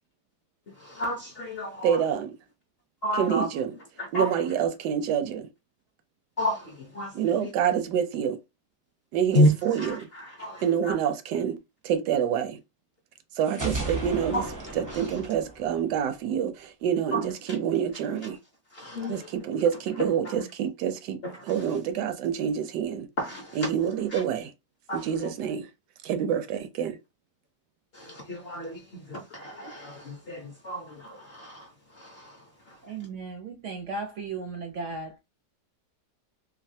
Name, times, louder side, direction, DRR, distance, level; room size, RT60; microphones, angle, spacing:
voice 1, 0.7-2.0 3.0-3.5 4.0-4.4 6.4-7.5 9.3-10.9 14.3-14.5 14.9-15.1 17.1-17.2 18.7-19.3 20.2-20.3 21.2-21.4 23.2-23.6 24.1-24.2 24.9-25.1 27.9-32.8, equal, 50° left, 0.7 m, -30 dB
voice 2, 1.8-2.3 3.1-3.7 4.1-5.5 7.1-8.4 9.1-10.1 10.6-11.6 11.8-12.6 13.4-14.4 14.7-18.4 19.1-23.1 23.6-24.5 24.9-25.7 26.0-27.0, right 8 dB, 85° right, 1.2 m, -27 dB
sound 1, 13.5-16.3, right 2 dB, 25° right, 0.4 m, -34 dB
voice 3, 32.8-35.2, right 3 dB, 65° right, 0.7 m, -36 dB
3.2 x 2.3 x 2.6 m
omnidirectional pair, 1.8 m